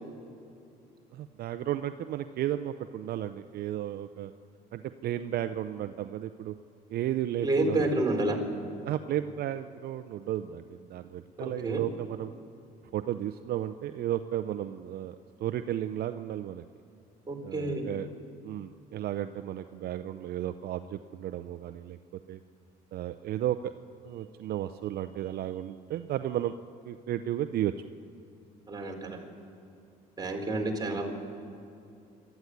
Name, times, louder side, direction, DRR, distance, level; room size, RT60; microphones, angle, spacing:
voice 1, 1.1-4.3 4.7-6.5 6.9-7.8 8.8-12.3 12.9-16.6 17.4-18.1 18.4-22.0 22.3-22.4 22.9-23.7 24.0-26.5 26.8-27.7 30.8-31.0, right 12 dB, 65° right, 9 dB, 0.7 m, -33 dB
voice 2, 7.4-8.4 11.4-11.8 17.3-17.9 28.7-29.2 30.2-31.1, right 2 dB, 25° right, 1 dB, 4.0 m, -29 dB
27.0 x 13.0 x 9.5 m, 2.6 s
cardioid pair, 110°, 17 cm